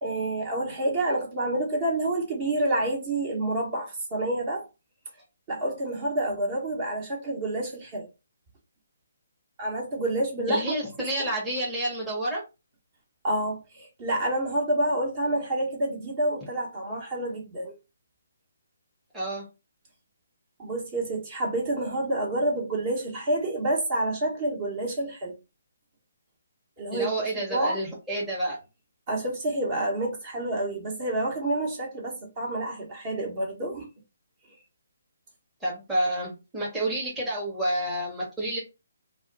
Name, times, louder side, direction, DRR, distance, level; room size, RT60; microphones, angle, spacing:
voice 1, 0.0-4.7 5.5-8.1 9.6-10.8 11.2-11.3 13.2-17.7 20.6-25.3 26.8-27.1 27.5-27.8 29.1-33.9, right 1 dB, 35° right, 1.1 m, -28 dB
voice 2, 10.5-12.4 19.1-19.4 26.9-28.6 35.6-38.6, right 1 dB, 10° right, 1.0 m, -29 dB
2.4 x 2.2 x 3.9 m
figure-of-eight pair, 150°, 0 cm